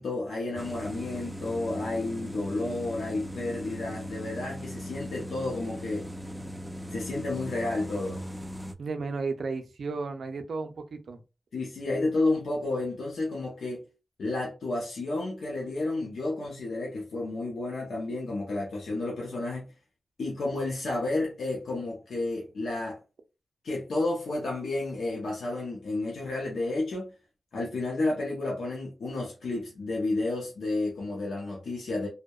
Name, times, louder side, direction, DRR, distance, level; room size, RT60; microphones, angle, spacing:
voice 1, 0.0-6.1 6.9-8.2 11.5-13.8 14.2-19.7 20.2-23.0 23.6-27.1 27.5-32.1, left 2 dB, 85° left, 0.6 m, -31 dB
sound 1, 0.6-8.7, equal, 10° right, 0.4 m, -39 dB
voice 2, 8.8-11.2, right 4 dB, 80° right, 0.4 m, -34 dB
2.6 x 2.1 x 2.2 m
cardioid pair, 45°, 0 cm